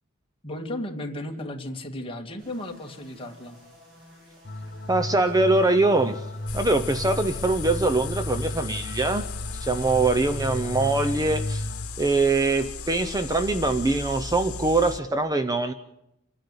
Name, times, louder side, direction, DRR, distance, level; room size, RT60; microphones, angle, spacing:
voice 1, 0.4-3.6, left 1 dB, 25° left, 2 dB, 2.2 m, -34 dB
sound 1, 2.4-7.9, equal, 60° right, 7.7 m, -53 dB
sound 2, 4.4-11.9, left 1 dB, 50° left, 1.0 m, -34 dB
voice 2, 4.9-6.2 6.5-9.3 9.5-11.7 12.0-15.7, right 2 dB, 15° right, 9 dB, 0.7 m, -23 dB
sound 3, 6.5-15.0, left 4 dB, 75° left, 1.3 m, -36 dB
27.5 x 10.5 x 9.7 m, 0.87 s
head